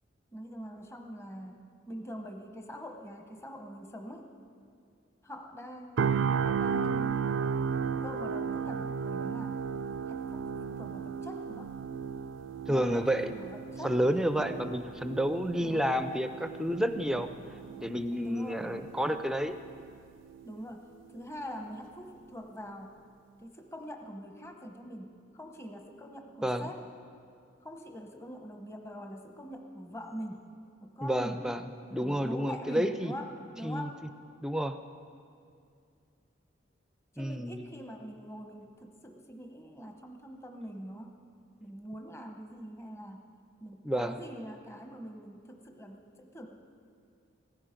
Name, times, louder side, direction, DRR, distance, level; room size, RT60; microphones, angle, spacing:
voice 1, 0.3-4.3 5.2-7.3 8.0-9.6 10.1-11.8 12.7-14.0 15.6-15.8 17.5-18.9 20.4-22.9 23.4-26.9 27.6-30.5 30.8-31.4 31.9-34.0 37.1-41.2 41.6-43.2 43.6-46.5, equal, 15° left, 3 dB, 1.0 m, -44 dB
sound 1, 6.0-20.0 20.3-20.5, right 6 dB, 80° right, 0.4 m, -34 dB
voice 2, 12.7-13.3 13.8-17.3 17.8-19.6 26.4-26.7 31.0-31.6 31.9-33.1 33.6-33.9 34.4-34.8 37.2-37.6 43.8-44.2, equal, 5° right, 9 dB, 0.5 m, -30 dB
17.0 x 14.5 x 5.2 m, 2.3 s
head